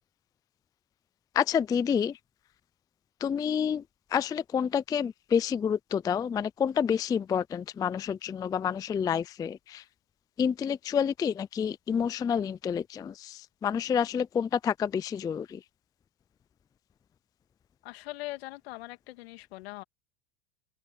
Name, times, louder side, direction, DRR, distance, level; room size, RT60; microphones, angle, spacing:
voice 1, 1.3-2.2 3.2-3.8 4.1-9.8 10.4-15.6, left 7 dB, 10° left, 0.3 m, -29 dB
voice 2, 17.8-19.8, left 19 dB, 70° left, 2.5 m, -41 dB
open air
hypercardioid pair, 110°, 32 cm